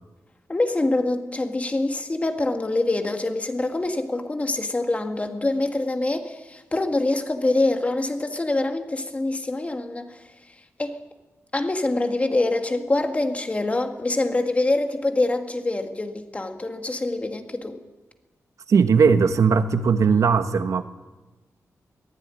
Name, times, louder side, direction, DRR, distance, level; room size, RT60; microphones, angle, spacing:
voice 1, 0.5-10.2 10.8-11.0 11.5-17.8, left 2 dB, 25° left, 6 dB, 2.0 m, -25 dB
voice 2, 18.7-20.8, right 5 dB, 70° right, 10 dB, 1.3 m, -18 dB
23.0 x 15.5 x 9.9 m, 1.2 s
wide cardioid pair, 120°, 6 cm